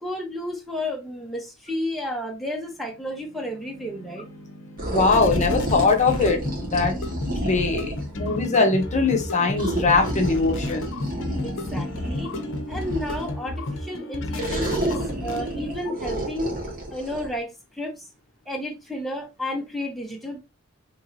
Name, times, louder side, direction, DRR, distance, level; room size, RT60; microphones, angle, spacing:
voice 1, 0.0-4.2 11.4-12.3 12.7-16.5 16.9-18.1 18.5-20.4, left 1 dB, ahead, 0.8 m, -32 dB
sound 1, 3.0-15.8, left 2 dB, 65° left, 0.7 m, -33 dB
sound 2, 4.8-8.1 9.6-13.4 14.3-17.3, right 1 dB, 45° right, 1.4 m, -30 dB
voice 2, 4.9-7.0 7.4-10.9, left 3 dB, 35° left, 0.7 m, -21 dB
3.0 x 2.7 x 3.9 m
head